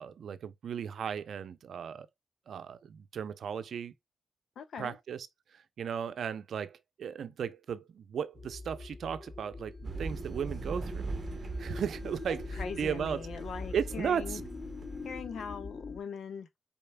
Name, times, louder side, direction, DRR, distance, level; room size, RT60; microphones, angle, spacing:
voice 1, 0.0-2.1 2.5-3.9 4.8-5.3 5.5-11.1 11.6-13.2 13.7-14.4, right 7 dB, 75° right, 0.6 m, -36 dB
voice 2, 4.5-5.0 12.5-14.4 15.0-16.5, left 6 dB, 80° left, 1.1 m, -41 dB
sound 1, 8.3-16.0, left 3 dB, 35° left, 0.8 m, -43 dB
sound 2, 9.8-15.2, right 4 dB, 45° right, 0.8 m, -41 dB
5.4 x 4.3 x 2.2 m
cardioid pair, 70°, 0 cm